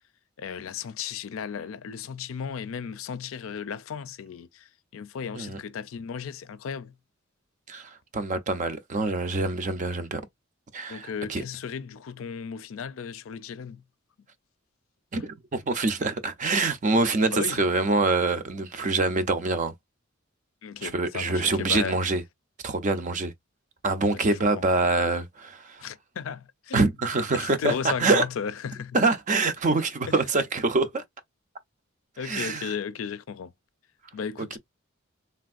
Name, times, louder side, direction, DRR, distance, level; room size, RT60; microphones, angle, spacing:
voice 1, 0.4-6.9 10.9-13.8 17.2-17.8 20.6-22.0 24.1-24.2 24.5-24.6 25.8-26.8 27.3-29.0 30.1-30.2 32.2-33.5 34.1-34.6, left 6 dB, 85° left, 0.4 m, -35 dB
voice 2, 7.7-10.2 10.7-11.4 15.1-19.7 20.8-22.2 22.6-23.3 23.8-25.8 26.7-28.2 28.9-31.0 32.2-32.7, right 3 dB, 40° right, 0.5 m, -25 dB
3.4 x 2.5 x 2.4 m
head